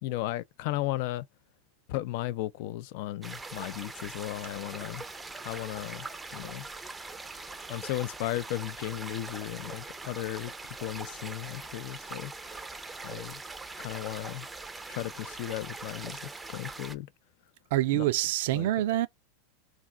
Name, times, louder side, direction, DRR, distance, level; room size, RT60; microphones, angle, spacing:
voice 1, 0.0-1.3 1.9-5.0 5.4-6.1 6.3-6.7 7.7-12.3 13.0-13.4 13.8-14.5 14.9-17.1 17.9-18.0 18.5-18.7, left 15 dB, 60° left, 0.3 m, -35 dB
sound 1, 3.2-16.9, right 3 dB, 10° right, 0.5 m, -42 dB
voice 2, 17.7-19.1, right 15 dB, 70° right, 0.4 m, -26 dB
2.4 x 2.3 x 3.7 m
hypercardioid pair, 115°, 0 cm